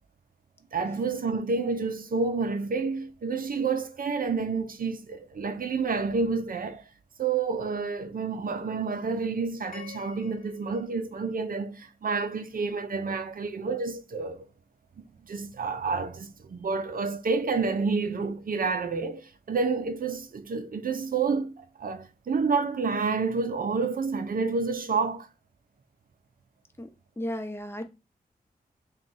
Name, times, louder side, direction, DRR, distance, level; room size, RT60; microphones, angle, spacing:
voice 1, 0.7-6.8 7.2-14.5 15.0-25.3, right 4 dB, 65° right, 0.6 m, -29 dB
sound 1, 9.7-12.1, left 9 dB, 65° left, 1.0 m, -50 dB
voice 2, 27.2-27.9, equal, 15° left, 0.8 m, -34 dB
3.6 x 2.3 x 4.1 m
cardioid pair, 55°, 16 cm